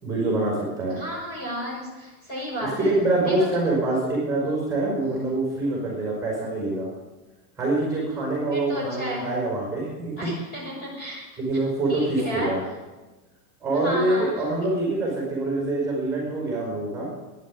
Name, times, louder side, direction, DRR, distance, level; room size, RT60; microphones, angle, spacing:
voice 1, 0.0-1.0 2.8-6.9 7.6-10.1 11.4-12.6 13.6-17.1, right 2 dB, 5° right, -4 dB, 5.2 m, -25 dB
voice 2, 0.9-2.9 3.2-3.7 5.1-5.2 8.5-9.3 10.2-11.3 11.9-12.5 13.7-14.5, equal, 20° left, -4 dB, 6.0 m, -33 dB
12.5 x 10.5 x 10.0 m, 1.2 s
supercardioid pair, 170°, 45 cm